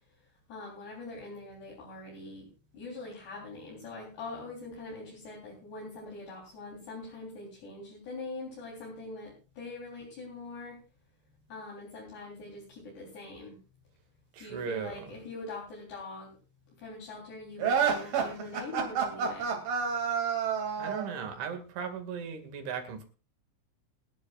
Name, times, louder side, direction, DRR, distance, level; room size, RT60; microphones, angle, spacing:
voice 1, 0.5-2.5 2.7-10.8 11.5-13.6 14.4-16.3 16.8-19.5, left 3 dB, 60° left, -4 dB, 5.6 m, -43 dB
voice 2, 14.3-15.2 20.8-23.0, right 6 dB, 70° right, 5 dB, 4.4 m, -37 dB
sound 1, 17.6-21.1, right 6 dB, 50° right, 3.9 m, -29 dB
28.5 x 11.0 x 2.5 m, 0.33 s
omnidirectional pair, 5.7 m